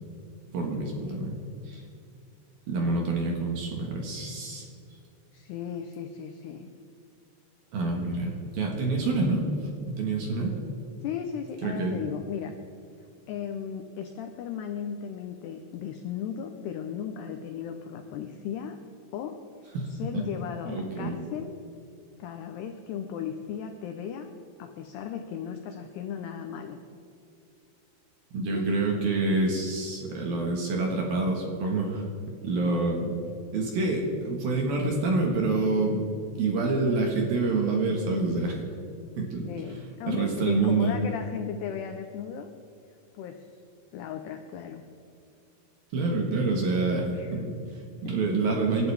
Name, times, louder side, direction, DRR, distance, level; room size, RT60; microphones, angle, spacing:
voice 1, 0.5-1.3 1.7-1.8 2.7-4.7 7.7-10.5 11.6-12.0 19.7-20.2 20.7-21.2 28.3-32.1 32.4-33.1 33.5-38.6 39.2-39.5 40.1-41.0 45.9-48.9, right 3 dB, 60° right, 0 dB, 2.8 m, -27 dB
voice 2, 5.3-6.7 11.0-12.6 13.3-18.8 19.1-19.4 19.9-21.5 22.2-24.3 24.6-26.8 28.5-28.8 39.5-42.5 43.1-43.5 43.9-44.8 47.1-47.3 48.1-48.2, left 8 dB, 85° left, 5 dB, 2.3 m, -36 dB
26.5 x 12.5 x 3.5 m, 2.5 s
omnidirectional pair, 5.8 m